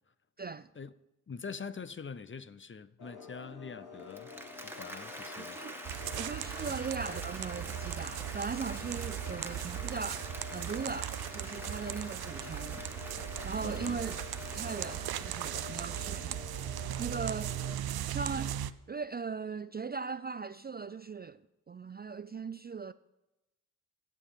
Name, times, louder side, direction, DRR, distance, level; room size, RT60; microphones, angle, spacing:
voice 1, 0.4-0.7 5.4-5.8 6.1-12.9 13.4-14.1 14.5-16.4 17.0-17.5 18.1-18.6 18.9-21.4 21.7-22.9, right 5 dB, 25° right, 0.4 m, -39 dB
voice 2, 1.3-4.3 4.6-5.6 6.7-6.8 13.6-14.0, left 5 dB, 30° left, 0.7 m, -44 dB
sound 1, 3.0-17.8, left 7 dB, 70° left, 3.1 m, -49 dB
Applause, 4.0-17.0, right 1 dB, 5° right, 1.7 m, -47 dB
sound 2, 5.9-18.7, right 12 dB, 70° right, 0.6 m, -38 dB
15.5 x 7.4 x 5.5 m
supercardioid pair, 45°, 38 cm